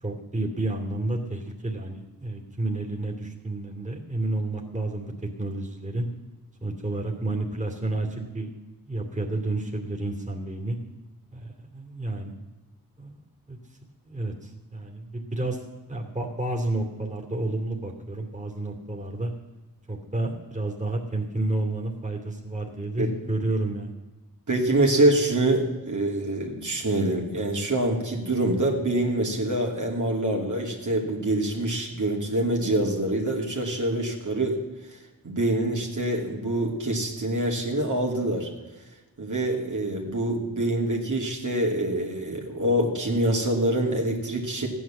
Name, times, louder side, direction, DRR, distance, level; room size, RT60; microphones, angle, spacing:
voice 1, 0.0-5.1 5.4-6.1 6.6-8.5 8.9-10.8 11.3-12.3 13.0-13.2 13.5-13.6 14.0-15.6 15.9-19.3 19.9-23.9, right 2 dB, 20° right, 1 dB, 2.8 m, -30 dB
voice 2, 24.5-34.6 35.2-38.5 39.2-44.7, right 1 dB, 55° right, -1 dB, 2.8 m, -25 dB
14.5 x 9.9 x 7.4 m, 1.2 s
cardioid pair, 55°, 36 cm